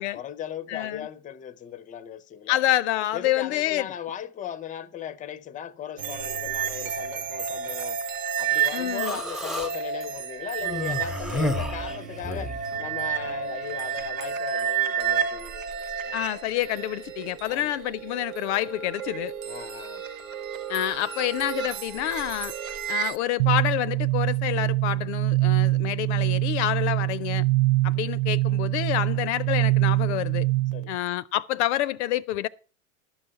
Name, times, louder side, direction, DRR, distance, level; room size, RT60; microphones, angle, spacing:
voice 1, 0.1-2.6 3.1-8.0 8.4-16.2 17.4-17.8 19.5-20.0 30.7-31.0, left 9 dB, 20° left, 0.6 m, -38 dB
voice 2, 0.7-1.1 2.5-3.9 8.7-9.1 16.1-19.3 20.7-22.5 22.9-27.4 27.8-30.5 30.9-32.5, left 13 dB, 60° left, 0.6 m, -27 dB
sound 1, 6.0-23.2, right 8 dB, 85° right, 1.0 m, -31 dB
Human voice, 9.0-9.7 10.6-12.6, left 1 dB, ahead, 0.9 m, -30 dB
sound 2, 23.4-31.0, right 19 dB, 55° right, 0.6 m, -24 dB
12.0 x 5.6 x 6.6 m
hypercardioid pair, 100°, 39 cm